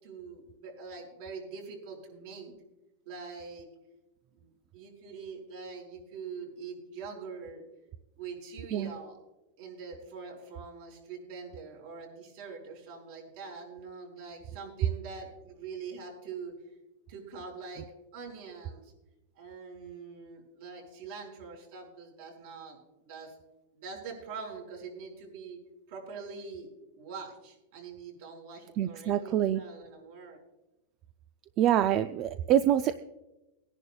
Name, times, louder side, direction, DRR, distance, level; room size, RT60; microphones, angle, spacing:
voice 1, 0.0-2.5 3.1-3.7 4.3-7.6 8.2-9.2 9.6-16.5 17.1-17.9 18.1-18.9 19.3-23.4 23.7-25.6 25.9-30.4, right 5 dB, 60° right, 0 dB, 5.3 m, -44 dB
voice 2, 28.8-29.6 31.6-33.0, right 11 dB, 35° right, 11 dB, 0.3 m, -26 dB
22.5 x 10.5 x 2.3 m, 0.99 s
supercardioid pair, 155°, 0 cm